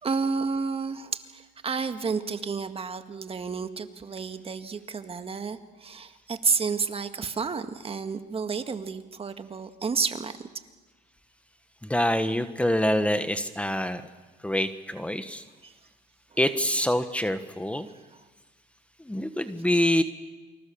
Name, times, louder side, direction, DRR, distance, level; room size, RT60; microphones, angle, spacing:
voice 1, 0.0-10.3 15.6-15.7, right 5 dB, 35° right, 9 dB, 1.8 m, -30 dB
voice 2, 11.9-14.0 14.4-15.4 16.4-17.9 19.1-20.0, left 1 dB, 5° left, 10 dB, 1.4 m, -25 dB
28.5 x 24.5 x 7.1 m, 1.3 s
cardioid pair, 95°, 18 cm